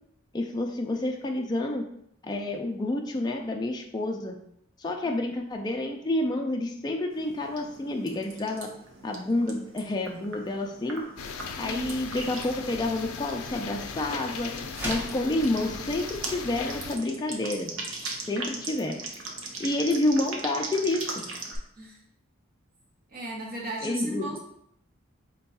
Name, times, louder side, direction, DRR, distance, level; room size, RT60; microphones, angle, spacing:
voice 1, 0.3-1.8 2.2-4.4 4.8-8.7 9.0-11.1 11.6-14.5 14.8-17.7 18.3-19.0 19.6-21.3 23.8-24.4, left 2 dB, 20° left, 2 dB, 0.3 m, -29 dB
sound 1, 7.1-21.6, right 3 dB, 65° right, 0.7 m, -40 dB
sound 2, 11.2-17.0, left 5 dB, 90° left, 0.4 m, -38 dB
voice 2, 11.6-12.0 18.4-18.7 19.5-19.7 21.8-22.0 23.1-24.4, right 1 dB, 45° right, -4 dB, 1.1 m, -37 dB
sound 3, 14.7-15.2, equal, 10° right, 0.7 m, -34 dB
4.4 x 2.3 x 4.0 m, 0.73 s
head